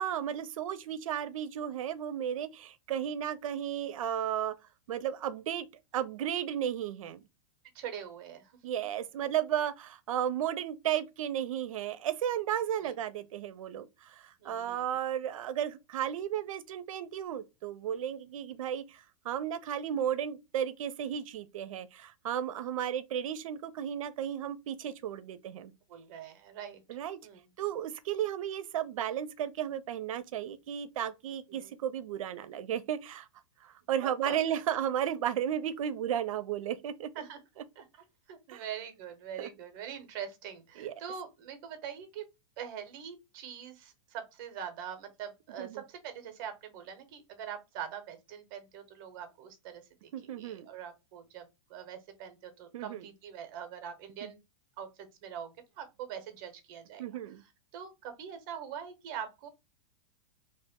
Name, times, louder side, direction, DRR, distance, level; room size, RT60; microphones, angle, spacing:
voice 1, 0.0-4.5 4.9-5.7 5.9-7.2 8.6-25.7 26.9-27.2 27.6-33.3 33.6-37.1 38.5-38.6 39.4-39.5 40.8-40.9 45.6-45.8 50.1-50.7 52.7-53.1 54.2-54.3 57.0-57.4, right 10 dB, 85° right, 0.5 m, -34 dB
voice 2, 7.7-8.5 12.8-12.9 14.4-14.9 25.9-27.5 31.5-31.7 34.0-34.6 37.2-37.4 37.8-42.3 42.6-50.1 50.4-54.4 54.8-57.0 57.7-59.5, right 8 dB, 40° right, 0.7 m, -43 dB
2.7 x 2.0 x 3.4 m
supercardioid pair, 160°, 17 cm